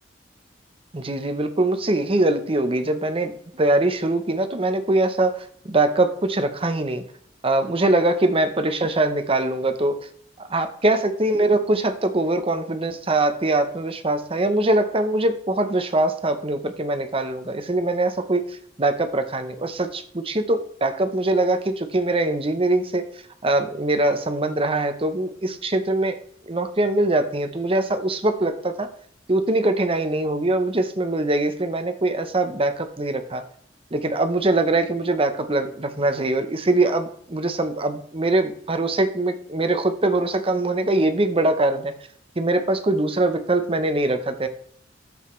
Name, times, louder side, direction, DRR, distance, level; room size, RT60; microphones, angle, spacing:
voice 1, 0.9-7.0 7.4-10.0 10.4-18.4 18.8-23.0 23.4-26.2 26.5-28.9 29.3-33.4 33.9-41.9 42.4-44.5, right 2 dB, 30° right, 8 dB, 0.9 m, -22 dB
11.5 x 7.9 x 3.3 m, 0.64 s
head